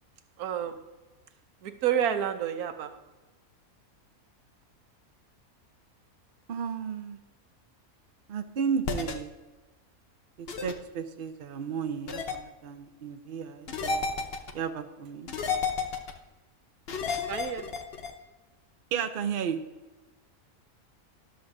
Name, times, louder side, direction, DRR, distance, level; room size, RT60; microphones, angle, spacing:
voice 1, 0.4-0.8 1.6-3.0 17.3-17.8, right 9 dB, 90° right, 1.2 m, -29 dB
voice 2, 6.5-7.2 8.3-9.3 10.4-14.0 14.5-15.3 18.9-19.6, right 7 dB, 50° right, 0.7 m, -33 dB
sound 1, 8.8-9.1 10.5-10.7 12.1-12.4 13.7-14.5 15.3-16.1 16.9-18.1, left 5 dB, 50° left, 1.0 m, -31 dB
13.0 x 11.0 x 2.6 m
omnidirectional pair, 1.5 m